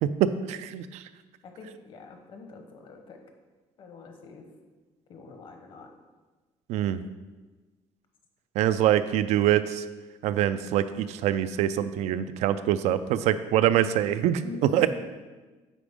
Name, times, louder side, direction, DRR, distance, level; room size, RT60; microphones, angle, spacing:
voice 1, 0.0-1.0 6.7-7.0 8.6-9.8 10.2-14.4 14.7-14.9, right 11 dB, 80° right, 12 dB, 0.4 m, -24 dB
voice 2, 1.4-3.2 3.8-4.4 5.1-5.9 14.4-14.8, left 4 dB, 50° left, 4 dB, 1.0 m, -44 dB
8.3 x 5.1 x 3.6 m, 1.2 s
cardioid pair, 160°, 11 cm